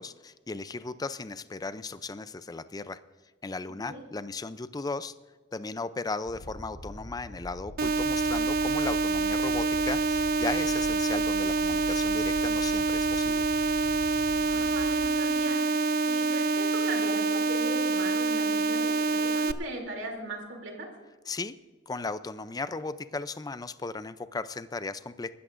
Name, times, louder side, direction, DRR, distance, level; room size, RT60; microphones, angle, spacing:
voice 1, 0.0-3.0 3.4-5.1 5.5-13.4 21.3-21.5 21.9-25.3, left 3 dB, 20° left, 13 dB, 0.4 m, -36 dB
sound 1, 6.3-15.1, equal, 70° left, 1.9 m, -43 dB
sound 2, 7.8-19.5, right 3 dB, 50° right, 0.5 m, -26 dB
voice 2, 14.3-15.6 16.0-20.9, right 2 dB, 70° right, 1 dB, 2.9 m, -38 dB
25.5 x 13.0 x 2.5 m, 1.4 s
head